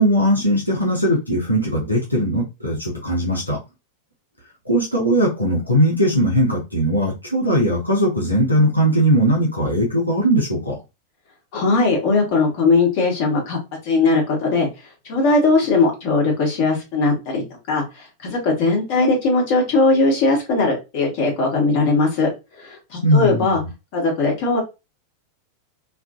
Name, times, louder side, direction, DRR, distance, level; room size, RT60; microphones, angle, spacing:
voice 1, 0.0-3.6 4.6-10.8 23.0-23.7, equal, 90° left, -4 dB, 0.8 m, -19 dB
voice 2, 11.5-13.6 13.8-14.7 15.0-17.4 17.7-22.3 22.6-23.6 23.9-24.6, left 3 dB, 45° left, 0 dB, 1.1 m, -19 dB
2.5 x 2.4 x 2.4 m, 0.26 s
figure-of-eight pair, 90°, 0 cm